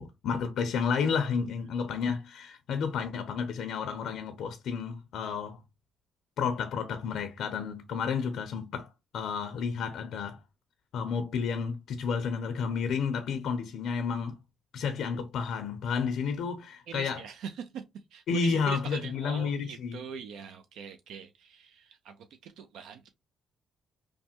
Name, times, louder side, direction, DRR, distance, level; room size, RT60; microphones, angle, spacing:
voice 1, 0.0-5.6 6.4-10.4 10.9-14.4 14.7-17.2 18.3-20.0, left 6 dB, 75° left, 0.5 m, -31 dB
voice 2, 16.9-17.9 18.1-23.1, right 7 dB, 85° right, 0.4 m, -42 dB
3.2 x 2.0 x 2.8 m
cardioid pair, 90°, 0 cm